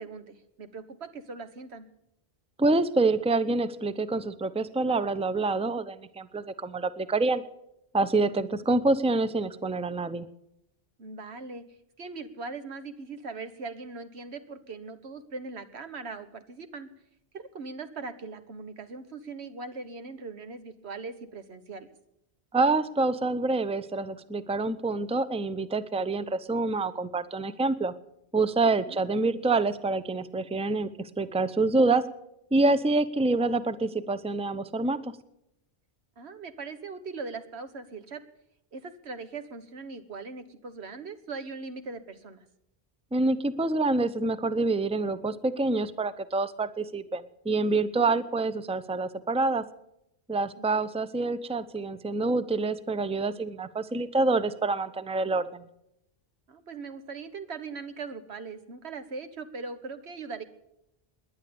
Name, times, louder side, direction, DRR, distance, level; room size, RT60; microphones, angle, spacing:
voice 1, 0.0-1.9 11.0-11.6 12.0-16.9 17.3-21.9 28.9-29.0 36.2-38.2 38.7-42.5 48.0-48.2 50.6-50.8 56.5-60.4, right 4 dB, 85° right, 10 dB, 1.6 m, -40 dB
voice 2, 2.6-7.4 7.9-10.3 22.5-27.9 28.3-32.0 32.5-35.1 43.1-49.6 50.3-55.7, right 3 dB, 5° right, 14 dB, 0.6 m, -27 dB
19.0 x 10.5 x 7.0 m, 0.81 s
omnidirectional pair, 1.1 m